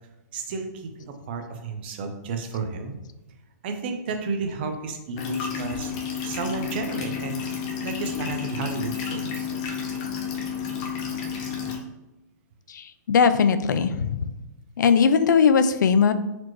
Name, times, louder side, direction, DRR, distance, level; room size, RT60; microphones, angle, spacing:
voice 1, 0.3-3.0 3.6-5.9 6.2-7.4 7.8-9.5, right 4 dB, 35° right, 5 dB, 0.5 m, -32 dB
sound 1, 5.2-11.8, left 7 dB, 25° left, 0.5 m, -31 dB
voice 2, 12.7-14.3 14.8-16.1, left 6 dB, 80° left, 11 dB, 0.4 m, -19 dB
4.2 x 3.0 x 3.0 m, 0.99 s
hypercardioid pair, 165°, 10 cm